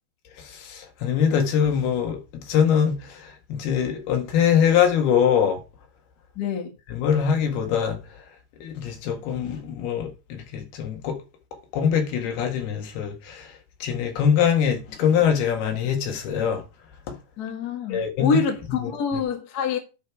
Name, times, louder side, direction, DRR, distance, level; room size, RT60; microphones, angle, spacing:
voice 1, 0.5-5.6 6.9-8.0 8.6-11.2 11.7-13.5 13.8-16.6 17.1-17.2 17.9-18.4 18.8-18.9, left 8 dB, 80° left, 3.7 m, -23 dB
voice 2, 6.3-6.7 17.4-19.8, left 5 dB, 45° left, 1.2 m, -26 dB
10.5 x 5.2 x 4.8 m
omnidirectional pair, 4.5 m